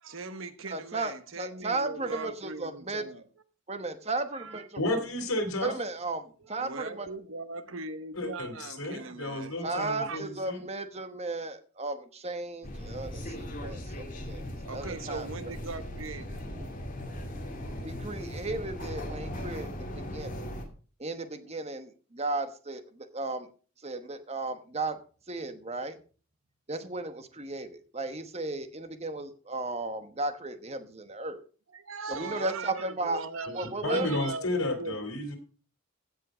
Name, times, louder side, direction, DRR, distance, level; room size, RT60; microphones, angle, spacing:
voice 1, 0.0-3.2 4.3-4.7 6.5-10.2 14.7-16.4 31.7-35.0, right 3 dB, 70° right, 11 dB, 1.1 m, -40 dB
voice 2, 0.7-3.0 3.7-4.8 5.6-7.1 9.6-14.4 14.7-15.5 17.8-20.5 21.0-23.5 23.8-25.0 25.3-26.0 26.7-31.4 32.1-33.2 33.5-34.1, right 2 dB, 30° right, 9 dB, 1.1 m, -35 dB
voice 3, 4.8-5.7 8.1-10.6 33.8-35.4, left 1 dB, 85° left, 4 dB, 3.2 m, -32 dB
sound 1, 12.6-20.6, equal, 40° left, 2.4 m, -38 dB
16.0 x 5.6 x 5.0 m, 0.39 s
head